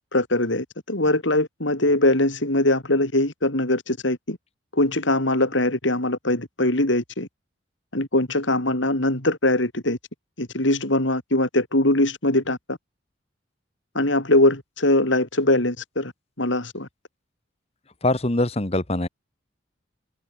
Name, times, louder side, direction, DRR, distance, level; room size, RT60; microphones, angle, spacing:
voice 1, 0.1-4.4 4.7-7.3 7.9-10.0 10.4-12.8 13.9-16.1 16.4-16.9, left 1 dB, 70° left, 4.3 m, -22 dB
voice 2, 18.0-19.1, left 2 dB, 30° left, 1.4 m, -23 dB
head